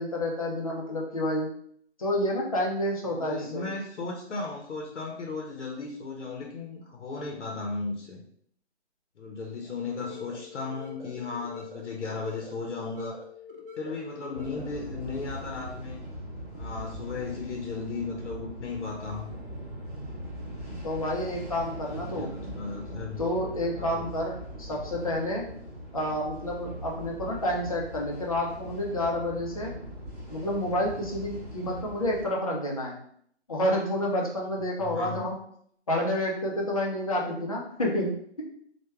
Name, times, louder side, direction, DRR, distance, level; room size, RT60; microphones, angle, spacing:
voice 1, 0.0-1.5 2.0-3.7 20.8-22.3 23.2-25.4 25.9-29.7 30.3-33.0 33.5-35.4 35.9-38.1, left 1 dB, 30° left, -2 dB, 0.4 m, -29 dB
voice 2, 3.0-8.2 9.2-13.2 13.8-16.0 16.5-19.3 21.8-23.3 23.8-24.1 34.8-35.3, left 4 dB, 80° left, 0 dB, 0.7 m, -36 dB
sound 1, 9.9-14.9, left 5 dB, 50° right, 0.6 m, -45 dB
sound 2, 14.3-32.3, equal, 35° right, 1.2 m, -41 dB
3.0 x 2.2 x 2.2 m, 0.65 s
figure-of-eight pair, 150°, 35 cm